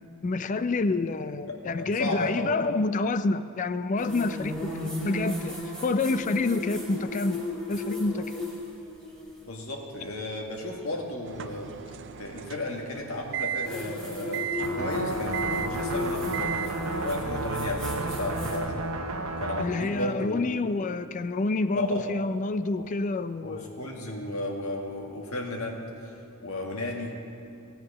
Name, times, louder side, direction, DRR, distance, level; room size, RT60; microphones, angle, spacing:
voice 1, 0.2-5.6 5.8-7.4 7.7-8.4 19.6-23.7, left 3 dB, 35° left, 12 dB, 0.3 m, -28 dB
voice 2, 1.5-2.5 9.5-11.7 12.2-16.5 17.0-18.9 19.4-20.5 21.7-22.0 22.7-22.9 23.4-27.1, left 1 dB, 75° left, 0 dB, 1.7 m, -34 dB
sound 1, 4.0-9.5 11.5-11.6 13.6-18.6, left 1 dB, 5° left, 2.2 m, -35 dB
sound 2, 11.2-16.7, right 9 dB, 55° right, 0.4 m, -36 dB
sound 3, 14.6-19.6, right 2 dB, 75° right, 0.8 m, -32 dB
16.0 x 7.9 x 5.4 m, 2.7 s
head